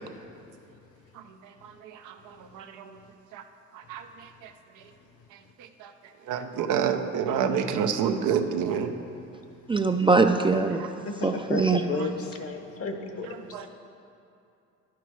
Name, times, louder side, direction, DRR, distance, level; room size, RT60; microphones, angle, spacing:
voice 1, 1.1-3.0 3.3-3.4 3.7-4.5 5.6-5.9 6.3-8.9 10.8-10.9 11.9-12.1 13.3-13.7, right 7 dB, 90° right, 7 dB, 0.6 m, -29 dB
voice 2, 9.7-10.9 11.2-11.9, right 4 dB, 20° right, 6 dB, 0.3 m, -22 dB
voice 3, 11.0-13.3, left 3 dB, 50° left, 5 dB, 0.9 m, -33 dB
10.5 x 6.0 x 4.6 m, 2.6 s
cardioid pair, 90°, 30 cm